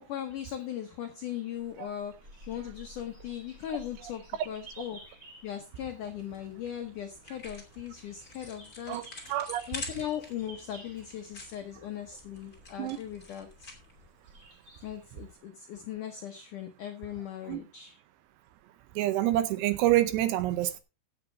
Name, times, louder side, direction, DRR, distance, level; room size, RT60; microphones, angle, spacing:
voice 1, 0.1-5.0 5.4-9.0 9.7-13.7 14.8-18.0, left 10 dB, 85° left, 1.8 m, -39 dB
sound 1, 1.5-15.3, right 1 dB, 20° right, 4.7 m, -54 dB
sound 2, 5.9-14.1, left 3 dB, 25° left, 2.2 m, -47 dB
voice 2, 9.3-9.6 12.8-13.0 17.5-17.6 19.0-20.8, right 14 dB, 80° right, 2.7 m, -27 dB
16.0 x 7.3 x 3.8 m
omnidirectional pair, 5.3 m